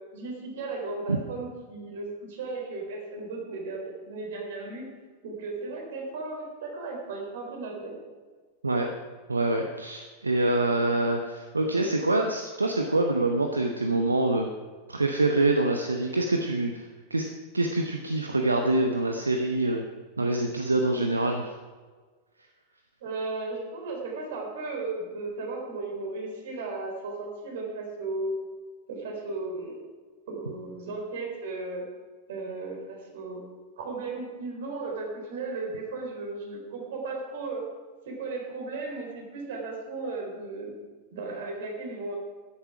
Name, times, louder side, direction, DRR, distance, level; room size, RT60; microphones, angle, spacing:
voice 1, 0.1-4.8 5.2-8.0 23.0-28.4 28.9-29.8 30.3-31.8 32.3-33.4 33.8-37.7 38.0-40.7 41.1-42.2, right 3 dB, 55° right, 1 dB, 3.9 m, -35 dB
voice 2, 9.3-14.5 14.9-17.2 17.5-19.8 20.2-21.5, right 2 dB, 80° right, 4 dB, 0.9 m, -25 dB
13.5 x 10.5 x 4.9 m, 1.5 s
figure-of-eight pair, 90°, 0 cm